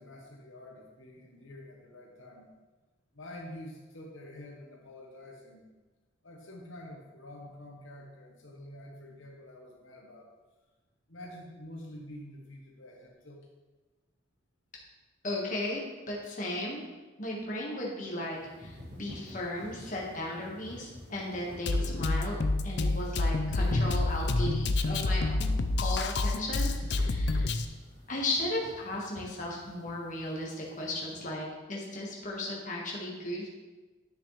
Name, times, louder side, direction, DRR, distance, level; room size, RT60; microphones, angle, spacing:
voice 1, 0.0-2.5 3.1-5.6 6.2-10.3 11.1-13.5, left 1 dB, 80° left, -1 dB, 1.2 m, -47 dB
voice 2, 15.2-16.8 17.2-25.4 25.8-27.5 28.1-33.5, left 1 dB, 40° left, -3 dB, 1.6 m, -36 dB
sound 1, 18.0-31.3, left 1 dB, 55° right, 2.3 m, -47 dB
Drum kit, 21.7-27.7, left 2 dB, 55° left, 0.5 m, -28 dB
10.0 x 6.6 x 3.3 m, 1.2 s
head